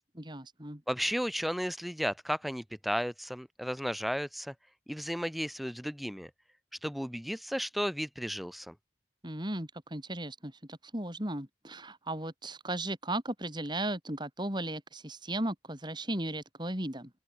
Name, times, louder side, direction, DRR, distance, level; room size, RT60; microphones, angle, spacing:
voice 1, 0.1-0.8 9.2-17.1, right 1 dB, 25° right, 6.6 m, -36 dB
voice 2, 0.9-4.5 4.9-6.3 6.8-8.7, equal, ahead, 7.0 m, -34 dB
open air
head